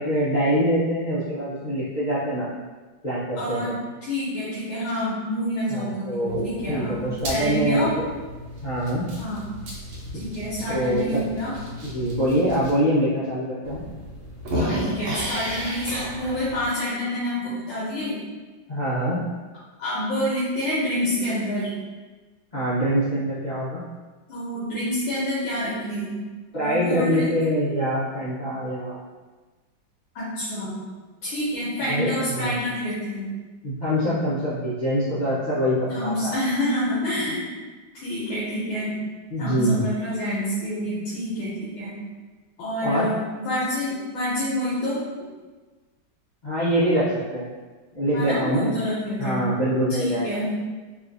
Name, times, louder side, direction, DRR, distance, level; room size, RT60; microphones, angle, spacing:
voice 1, 0.0-2.5 3.0-3.7 5.7-8.0 8.6-9.1 10.7-11.2 11.8-13.8 18.7-19.2 22.5-23.8 26.5-29.0 31.9-32.6 33.6-36.3 39.3-39.9 42.8-43.1 46.4-47.0 47.3-47.5 47.9-48.7 49.2-50.3, equal, 70° left, -12 dB, 0.4 m, -24 dB
voice 2, 3.4-3.7 4.0-7.0 7.3-7.9 9.1-9.5 10.2-11.5 14.5-18.2 19.8-21.8 24.3-26.1 26.6-27.4 30.1-30.8 31.2-33.3 35.9-37.5 37.9-39.1 39.4-42.0 42.6-45.0 48.1-49.4 50.0-50.5, left 1 dB, 85° left, -9 dB, 1.7 m, -27 dB
sound 1, 6.3-12.7 13.2-13.3 13.6-16.7, equal, 80° right, 1.6 m, -33 dB
4.8 x 2.4 x 2.6 m, 1.3 s
omnidirectional pair, 2.2 m